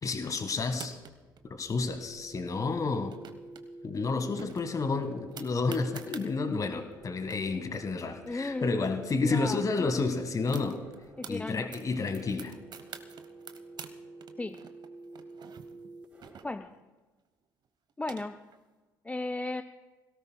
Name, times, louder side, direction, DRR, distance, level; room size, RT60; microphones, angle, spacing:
voice 1, 0.0-1.0 1.5-3.2 3.8-10.8 11.3-12.6, left 4 dB, 30° left, 9 dB, 1.7 m, -30 dB
sound 1, 0.6-1.4 2.9-3.6 3.9-4.0 4.4-6.3 6.9-7.0 7.2-9.1 9.4-9.5 9.7-11.3 11.7-13.9 14.2-16.8 17.6-18.6, right 7 dB, 40° right, 1.1 m, -48 dB
sound 2, 1.0-16.7, right 2 dB, 15° right, 4.4 m, -50 dB
voice 2, 8.2-8.9 9.3-9.9 11.2-11.7 14.4-14.6 16.4-16.7 18.0-18.4 19.0-19.6, left 2 dB, 10° left, 9 dB, 0.5 m, -35 dB
28.0 x 17.5 x 2.3 m, 1.2 s
figure-of-eight pair, 55°, 11 cm